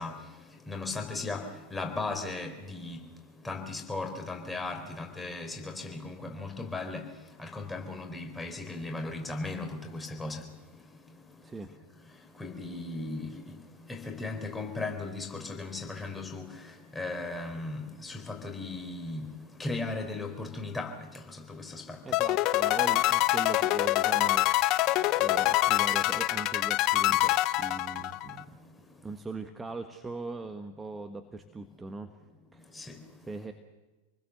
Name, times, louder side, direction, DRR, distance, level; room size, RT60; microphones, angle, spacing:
voice 1, 0.0-3.0 3.4-7.1 7.4-10.5 11.0-11.2 12.0-22.2 28.6-28.7 32.7-33.3, left 3 dB, 10° left, 5 dB, 4.3 m, -37 dB
voice 2, 22.0-24.7 25.2-28.4 29.0-32.1 32.5-32.7 33.3-33.5, right 3 dB, 10° right, 7 dB, 1.5 m, -40 dB
sound 1, 22.1-28.4, left 17 dB, 40° left, 0.9 m, -25 dB
28.0 x 20.5 x 6.9 m, 1.2 s
figure-of-eight pair, 90°, 0 cm